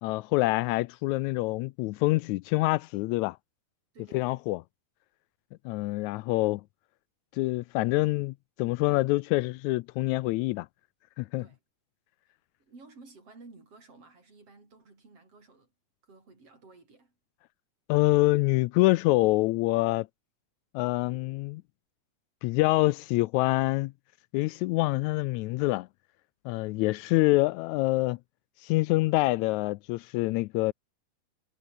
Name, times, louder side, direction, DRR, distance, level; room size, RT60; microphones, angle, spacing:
voice 1, 0.0-3.4 4.1-4.6 5.6-6.6 7.3-10.7 11.2-11.4 17.9-20.1 20.7-21.6 22.4-23.9 24.3-25.9 26.4-28.2 28.6-30.7, left 20 dB, 85° left, 1.6 m, -26 dB
voice 2, 3.9-4.4 11.4-11.6 12.6-15.7 16.0-17.1, right 3 dB, 45° right, 7.4 m, -53 dB
omnidirectional pair, 3.8 m